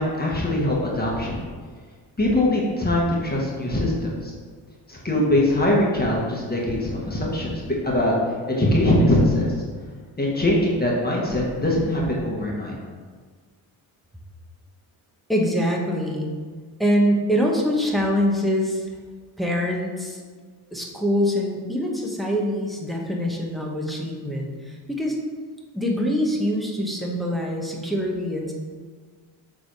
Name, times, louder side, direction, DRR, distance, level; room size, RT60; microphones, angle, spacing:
voice 1, 0.0-1.4 2.2-4.3 4.9-8.1 8.5-9.5 10.2-12.8, left 1 dB, 20° left, -4 dB, 1.4 m, -22 dB
voice 2, 15.3-16.3 16.8-18.8 19.4-20.2 20.7-25.2 25.7-28.5, equal, ahead, -2 dB, 1.0 m, -24 dB
6.8 x 3.5 x 4.7 m, 1.5 s
cardioid pair, 105°, 48 cm